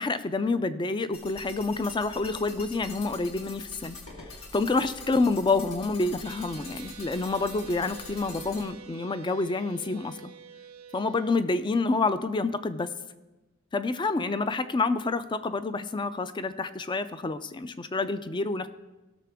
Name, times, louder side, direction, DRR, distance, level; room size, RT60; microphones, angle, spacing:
voice 1, 0.0-4.0 4.5-10.3 10.9-12.9 13.7-18.7, left 3 dB, 20° left, 12 dB, 0.4 m, -28 dB
sound 1, 1.1-8.6, left 3 dB, 70° left, 1.9 m, -44 dB
sound 2, 6.2-11.3, right 8 dB, 90° right, 0.7 m, -48 dB
16.5 x 6.7 x 3.5 m, 1.1 s
head